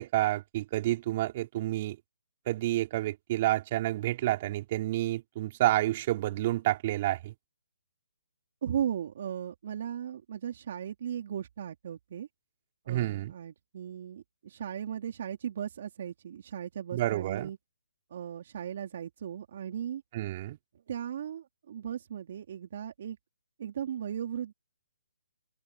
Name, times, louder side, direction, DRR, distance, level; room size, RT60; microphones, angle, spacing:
voice 1, 0.0-2.0 2.5-7.3 12.9-13.3 16.9-17.5 20.1-20.6, right 15 dB, 35° right, 4.3 m, -29 dB
voice 2, 8.6-12.3 12.8-17.6 18.1-20.0 20.9-23.2 23.6-24.5, right 9 dB, 50° right, 3.4 m, -37 dB
open air
hypercardioid pair, 160°, 0 cm